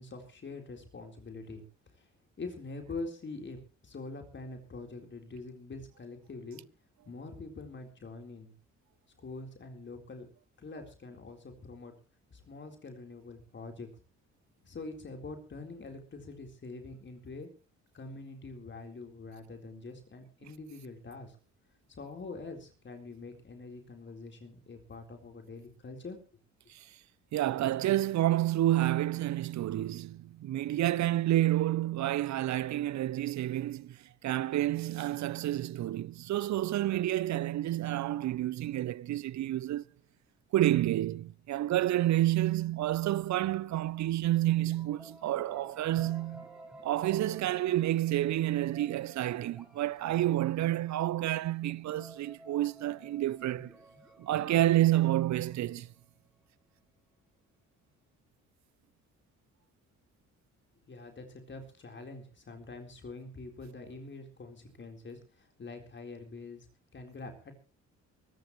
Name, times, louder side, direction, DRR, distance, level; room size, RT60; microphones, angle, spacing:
voice 1, 0.0-1.6 1.9-2.1 2.4-6.6 7.1-8.5 9.2-10.3 10.6-11.9 12.3-13.9 14.6-17.5 17.9-21.4 21.9-26.2 60.9-66.7 66.9-67.5, left 3 dB, 40° left, 4.0 m, -44 dB
voice 2, 27.3-39.8 40.5-46.5 46.8-53.7 54.2-55.9, right 14 dB, 65° right, 0.7 m, -29 dB
sound 1, 44.6-56.3, right 1 dB, ahead, 7.3 m, -54 dB
24.0 x 14.5 x 3.2 m
cardioid pair, 90°, 30 cm